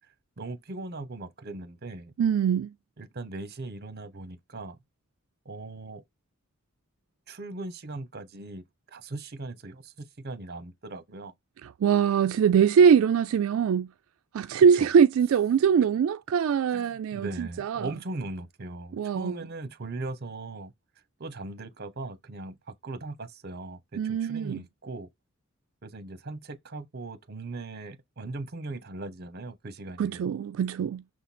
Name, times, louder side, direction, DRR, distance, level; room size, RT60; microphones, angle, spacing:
voice 1, 0.4-2.1 3.0-4.8 5.4-6.0 7.3-8.6 8.9-11.3 14.7-14.9 16.7-20.7 21.2-25.1 25.8-30.2, right 2 dB, 50° right, 1.0 m, -39 dB
voice 2, 2.2-2.7 11.6-13.9 14.3-17.9 19.0-19.4 24.0-24.6 30.0-31.0, right 7 dB, 75° right, 0.3 m, -22 dB
6.3 x 3.8 x 4.2 m
head